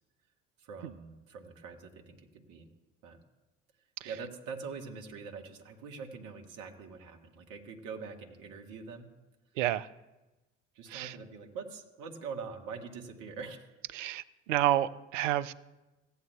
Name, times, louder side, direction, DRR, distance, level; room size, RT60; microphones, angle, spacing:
voice 1, 0.6-2.7 3.0-3.2 4.0-9.1 10.7-13.7, right 5 dB, 55° right, 3 dB, 1.6 m, -44 dB
voice 2, 9.6-9.9 10.9-11.1 13.9-14.2 14.5-15.5, right 13 dB, 75° right, 17 dB, 0.5 m, -29 dB
16.5 x 9.7 x 2.3 m, 1.1 s
figure-of-eight pair, 50°, 38 cm